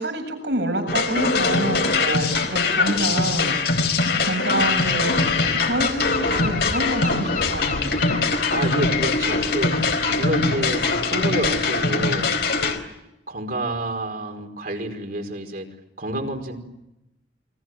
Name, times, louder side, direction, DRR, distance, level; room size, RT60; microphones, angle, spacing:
voice 1, 0.0-3.5 4.0-8.2, right 1 dB, 70° right, 5 dB, 7.9 m, -27 dB
sound 1, 0.9-12.8, left 3 dB, 60° left, 4.2 m, -22 dB
Gull seagull / Wind, 4.6-11.9, left 4 dB, 45° left, 4.4 m, -33 dB
voice 2, 8.5-12.3 12.6-12.8 13.3-15.7 16.0-16.6, right 1 dB, 55° right, 4 dB, 4.9 m, -29 dB
29.5 x 24.0 x 7.7 m, 0.90 s
head